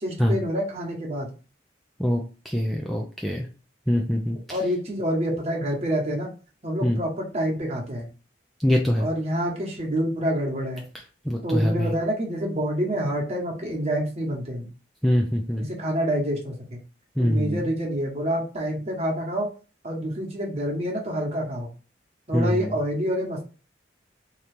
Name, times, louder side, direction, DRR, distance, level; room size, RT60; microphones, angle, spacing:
voice 1, 0.0-1.3 4.5-6.3 6.6-8.1 9.0-10.9 11.4-14.7 15.6-16.8 17.2-19.5 19.8-21.7 22.3-23.4, equal, 35° right, -1 dB, 1.1 m, -27 dB
voice 2, 2.0-3.5 3.9-4.4 6.8-7.0 8.6-9.1 11.3-11.9 15.0-15.7 17.2-17.6 22.3-22.7, equal, ahead, 0 dB, 0.4 m, -23 dB
3.8 x 2.9 x 3.4 m, 0.35 s
head